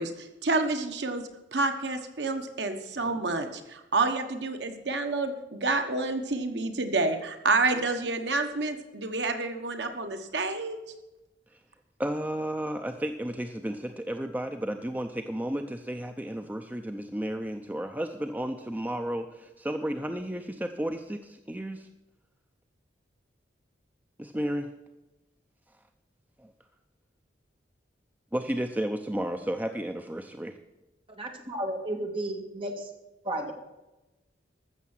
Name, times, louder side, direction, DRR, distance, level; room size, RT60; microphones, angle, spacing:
voice 1, 0.0-10.8, right 3 dB, 65° right, 6 dB, 1.2 m, -29 dB
voice 2, 12.0-21.9 24.2-24.7 26.4-26.5 28.3-30.6, right 1 dB, 10° right, 6 dB, 0.5 m, -33 dB
voice 3, 31.1-32.9 33.2-33.5, right 1 dB, 30° right, 2 dB, 2.1 m, -33 dB
14.5 x 6.8 x 7.3 m, 1.0 s
head